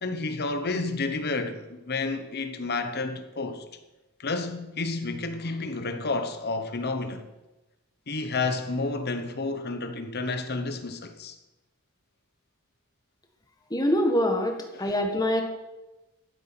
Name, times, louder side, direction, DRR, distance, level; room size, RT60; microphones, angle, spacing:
voice 1, 0.0-3.6 4.2-7.2 8.1-11.4, left 3 dB, 50° left, 1.1 m, -30 dB
voice 2, 13.7-15.4, left 1 dB, 20° left, 1.7 m, -24 dB
13.0 x 8.1 x 6.1 m
head